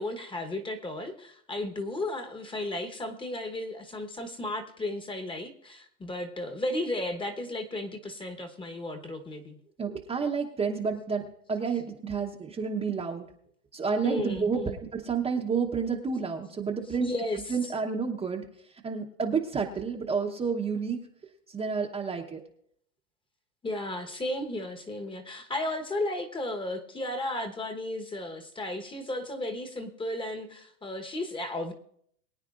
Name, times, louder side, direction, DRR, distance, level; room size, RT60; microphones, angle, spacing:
voice 1, 0.0-9.6 14.0-14.8 17.0-17.6 23.6-31.7, left 1 dB, 10° left, 6 dB, 1.2 m, -34 dB
voice 2, 9.8-13.3 13.7-17.1 17.5-18.5 18.8-21.0 21.5-22.4, right 5 dB, 15° right, 0 dB, 0.9 m, -30 dB
22.5 x 9.2 x 2.5 m, 0.67 s
hypercardioid pair, 125°, 43 cm